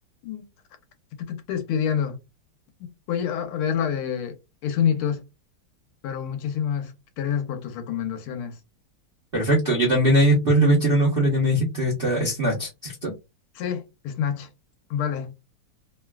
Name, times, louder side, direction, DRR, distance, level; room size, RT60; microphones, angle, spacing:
voice 1, 1.3-2.2 3.1-4.4 4.6-5.2 6.0-8.6 13.5-14.5 14.9-15.3, left 8 dB, 80° left, 1.6 m, -27 dB
voice 2, 9.3-13.1, right 1 dB, 60° right, 0.6 m, -20 dB
3.7 x 2.3 x 2.2 m
omnidirectional pair, 2.3 m